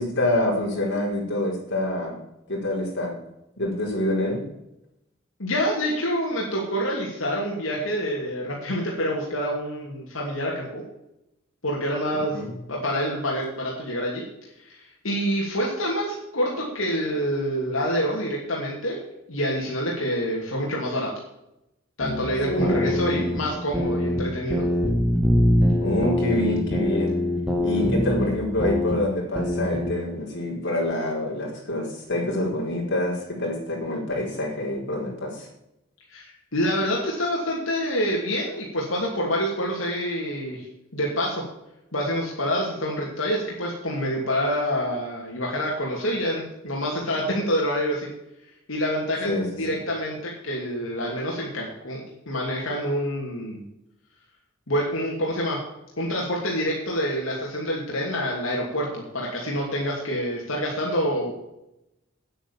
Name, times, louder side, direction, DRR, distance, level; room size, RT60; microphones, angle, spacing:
voice 1, 0.0-2.2 2.5-3.2 3.6-4.4 12.3-12.5 22.4-23.2 25.8-27.1 27.6-35.5 49.2-49.7, left 1 dB, 60° left, -2 dB, 4.8 m, -26 dB
voice 2, 5.4-10.8 11.6-12.4 12.7-14.2 14.6-19.0 19.3-21.1 22.0-24.6 36.1-40.6 40.9-41.4 41.9-48.1 48.7-53.6 54.7-55.6 56.0-61.3, equal, 85° left, -3 dB, 2.8 m, -27 dB
sound 1, 22.0-24.2 24.5-28.9 29.3-29.9, left 1 dB, 5° right, 2.2 m, -24 dB
9.5 x 9.0 x 7.3 m, 0.87 s
head